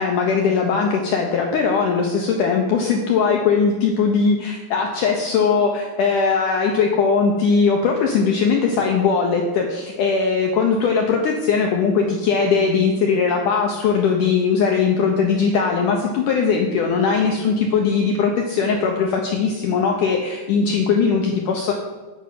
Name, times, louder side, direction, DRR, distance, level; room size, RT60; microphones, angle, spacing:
voice 1, 0.0-21.7, left 5 dB, 80° left, 1 dB, 1.8 m, -19 dB
9.8 x 5.3 x 7.6 m, 1.2 s
omnidirectional pair, 4.8 m